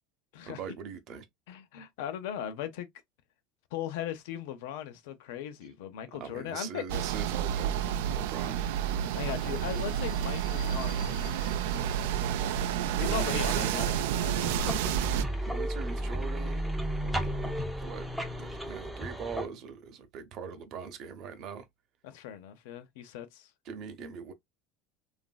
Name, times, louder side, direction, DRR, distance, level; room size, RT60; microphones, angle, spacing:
voice 1, 0.4-1.3 6.2-8.6 13.0-14.0 15.4-16.7 17.0-18.1 18.4-21.7 23.7-24.3, right 6 dB, 50° right, 0.6 m, -41 dB
voice 2, 1.5-2.9 3.7-7.1 9.1-12.5 13.0-14.9 15.2-15.5 22.0-23.5, left 10 dB, 80° left, 0.6 m, -39 dB
sound 1, 6.9-15.2, right 9 dB, 80° right, 0.3 m, -30 dB
Subway metro underground, 8.3-13.9, left 5 dB, 45° left, 0.8 m, -53 dB
sound 2, 14.4-19.5, right 1 dB, 5° right, 0.5 m, -33 dB
3.0 x 2.5 x 2.3 m
supercardioid pair, 145°, 0 cm